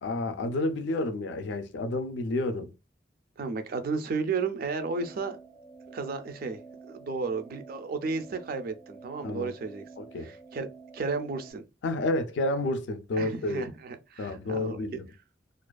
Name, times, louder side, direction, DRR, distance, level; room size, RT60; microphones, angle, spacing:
voice 1, 0.0-2.7 9.2-9.5 10.0-10.3 11.8-13.7 14.2-15.1, left 2 dB, 70° left, 0.4 m, -30 dB
voice 2, 3.4-5.4 5.9-6.6 6.9-9.8 10.2-11.6 13.2-14.8, right 4 dB, 50° right, 0.4 m, -33 dB
sound 1, 4.8-11.5, right 4 dB, 5° left, 0.5 m, -49 dB
2.4 x 2.3 x 2.2 m
head